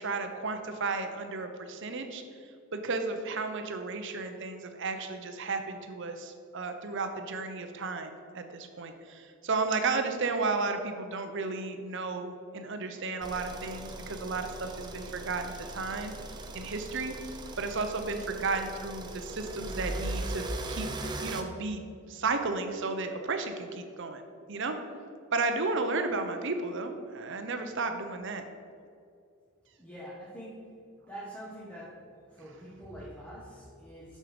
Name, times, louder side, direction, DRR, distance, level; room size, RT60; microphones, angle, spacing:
voice 1, 0.0-2.2 2.7-16.1 16.5-17.2 17.6-20.9 21.2-21.8 22.1-24.2 24.5-24.7 25.3-28.4, right 3 dB, 55° right, 7 dB, 0.8 m, -33 dB
sound 1, 13.2-21.4, right 2 dB, 20° right, 0.5 m, -39 dB
voice 2, 29.8-30.7 31.1-32.0 32.3-34.2, equal, 5° left, -7 dB, 1.3 m, -45 dB
7.1 x 6.5 x 5.1 m, 2.4 s
head